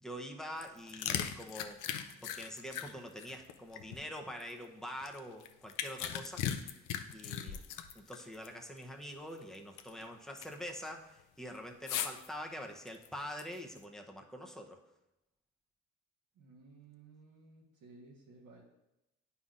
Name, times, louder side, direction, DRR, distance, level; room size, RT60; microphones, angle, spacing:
voice 1, 0.0-1.8 2.2-6.7 7.1-7.6 7.9-14.8, equal, ahead, 2 dB, 0.8 m, -45 dB
sound 1, 0.5-4.5 5.0-8.5 8.8-8.9 9.4-10.0 10.4-10.7 11.9-12.3 12.9-13.8, left 10 dB, 90° left, 0.6 m, -38 dB
voice 2, 16.3-18.6, right 3 dB, 85° right, -5 dB, 1.4 m, -57 dB
9.4 x 5.5 x 2.5 m, 0.93 s
cardioid pair, 90°, 30 cm